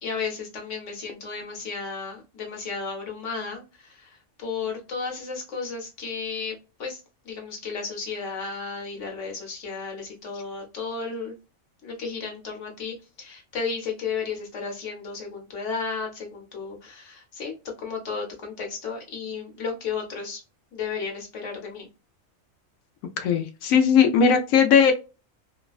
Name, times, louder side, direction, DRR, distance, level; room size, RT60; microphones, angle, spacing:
voice 1, 0.0-7.0 7.2-11.4 11.8-20.4 20.7-21.9, left 5 dB, 65° left, 1 dB, 1.3 m, -33 dB
voice 2, 23.2-24.9, left 6 dB, 90° left, 4 dB, 1.0 m, -18 dB
3.3 x 2.2 x 2.3 m, 0.29 s
omnidirectional pair, 1.4 m